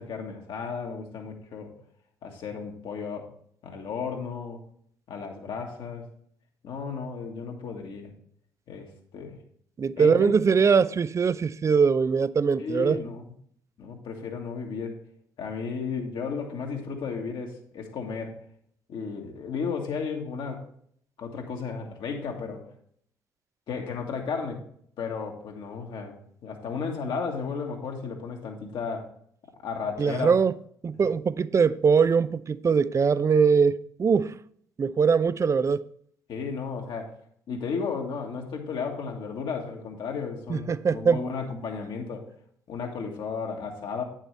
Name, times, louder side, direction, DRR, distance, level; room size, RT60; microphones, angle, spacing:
voice 1, 0.0-1.7 2.2-3.3 3.6-4.6 5.1-6.1 6.6-8.1 8.7-9.4 10.0-10.3 12.6-13.2 13.8-15.0 15.4-18.4 18.9-20.6 21.2-22.6 23.7-24.6 25.0-26.1 26.4-29.1 29.6-30.3 36.3-37.1 37.5-42.3 42.7-44.0, left 5 dB, 60° left, 1.7 m, -34 dB
voice 2, 9.8-13.0 30.0-30.5 30.8-34.3 34.8-35.8 40.5-41.2, right 5 dB, 30° right, 0.4 m, -22 dB
9.2 x 7.4 x 3.3 m
hypercardioid pair, 45°, 9 cm